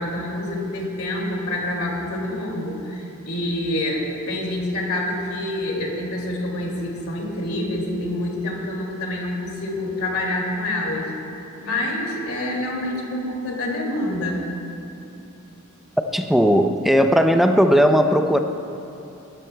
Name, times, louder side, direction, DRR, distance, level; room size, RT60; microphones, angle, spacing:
voice 1, 0.0-11.1 11.6-14.4, left 1 dB, 75° left, -2 dB, 2.3 m, -27 dB
voice 2, 16.1-18.4, equal, ahead, 6 dB, 0.4 m, -17 dB
19.0 x 13.5 x 2.2 m, 2.9 s
head